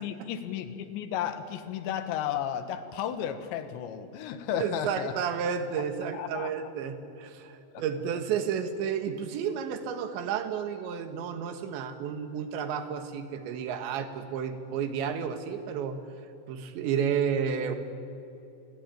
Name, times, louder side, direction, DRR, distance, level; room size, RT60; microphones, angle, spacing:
voice 1, 0.0-5.2 5.5-6.7 7.7-7.8, left 9 dB, 85° left, 9 dB, 3.8 m, -34 dB
voice 2, 4.6-16.0 16.5-17.8, right 7 dB, 90° right, 8 dB, 3.9 m, -31 dB
29.5 x 21.5 x 9.2 m, 2.7 s
omnidirectional pair, 5.0 m